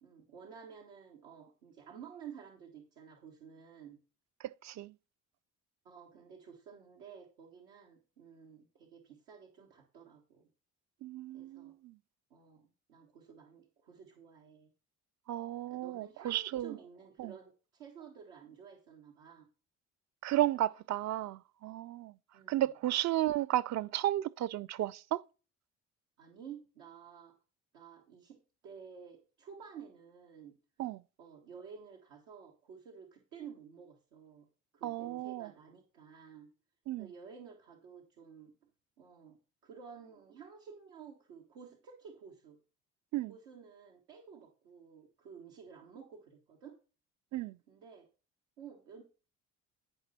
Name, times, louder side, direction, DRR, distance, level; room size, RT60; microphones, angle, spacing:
voice 1, 0.0-4.0 5.8-10.5 11.3-11.7 12.3-14.7 15.7-19.5 22.3-22.7 26.2-27.3 27.7-30.5 31.2-34.5 34.7-36.5 37.0-38.5 39.0-39.4 39.6-42.6 43.3-46.7 47.7-48.1 48.6-49.0, right 7 dB, 80° right, 1.4 m, -52 dB
voice 2, 4.4-4.9 11.0-11.9 15.3-16.8 17.2-17.3 20.2-22.1 22.5-25.2 30.8-31.0 34.8-35.5 36.9-37.1 43.1-43.3 47.3-47.6, right 14 dB, 50° right, 0.5 m, -33 dB
9.8 x 5.4 x 4.1 m
hypercardioid pair, 55°, 37 cm